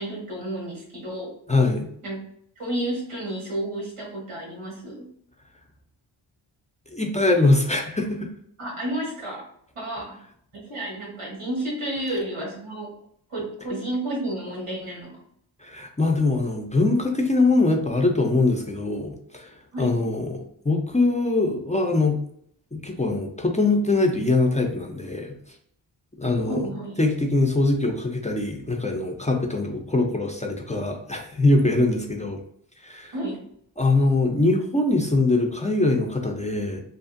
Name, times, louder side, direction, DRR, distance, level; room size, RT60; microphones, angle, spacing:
voice 1, 0.0-1.3 2.0-2.2 2.6-5.1 8.6-9.5 9.7-10.2 10.5-12.9 13.3-15.1 19.7-20.1 26.5-27.0 31.6-32.0 33.1-33.4, right 1 dB, 90° right, -3 dB, 1.2 m, -31 dB
voice 2, 1.5-1.9 6.9-8.3 15.6-19.5 19.8-22.2 22.7-25.4 26.2-26.6 27.0-32.4 32.8-33.1 33.8-36.8, left 2 dB, 15° left, 1 dB, 0.4 m, -22 dB
2.6 x 2.4 x 2.5 m, 0.67 s
cardioid pair, 45°, 50 cm